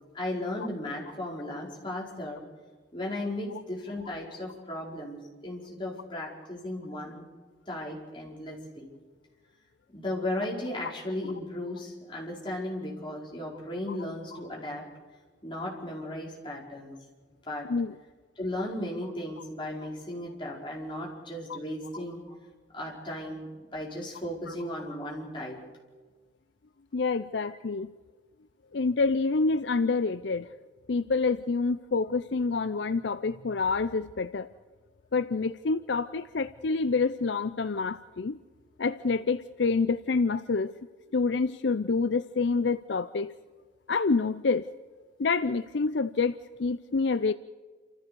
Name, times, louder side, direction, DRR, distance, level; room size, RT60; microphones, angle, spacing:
voice 1, 0.1-2.4 2.9-7.3 7.7-8.9 9.9-14.8 15.4-16.9 17.5-17.7 18.4-22.4 22.7-25.6, left 1 dB, 25° left, -3 dB, 4.9 m, -36 dB
voice 2, 26.9-27.9 28.7-30.5 30.9-34.5 35.1-38.4 38.8-40.7 41.1-43.3 43.9-44.7 45.2-47.3, left 4 dB, 65° left, 13 dB, 0.5 m, -27 dB
28.0 x 14.5 x 6.9 m, 1.4 s
head